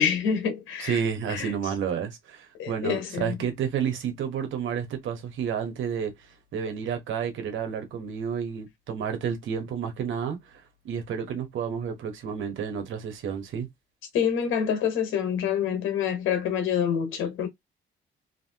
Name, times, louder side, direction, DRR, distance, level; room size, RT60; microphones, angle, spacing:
voice 1, 0.0-1.0 1.3-1.5 2.6-3.3 14.1-17.5, left 8 dB, 90° left, 1.2 m, -26 dB
voice 2, 0.8-13.7, right 7 dB, 75° right, 1.2 m, -31 dB
3.0 x 2.7 x 2.8 m
cardioid pair, 90°, 20 cm